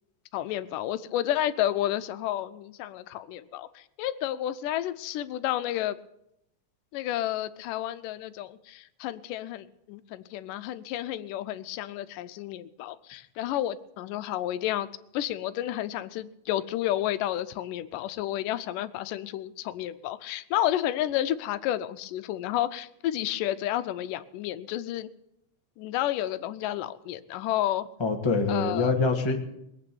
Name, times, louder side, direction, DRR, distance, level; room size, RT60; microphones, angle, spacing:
voice 1, 0.3-6.0 6.9-14.9 15.1-25.1 25.8-27.9 28.5-28.9, left 13 dB, 90° left, 13 dB, 2.3 m, -31 dB
voice 2, 28.0-29.4, left 3 dB, 20° left, 3 dB, 0.7 m, -25 dB
21.0 x 8.7 x 7.0 m, 0.80 s
omnidirectional pair, 3.7 m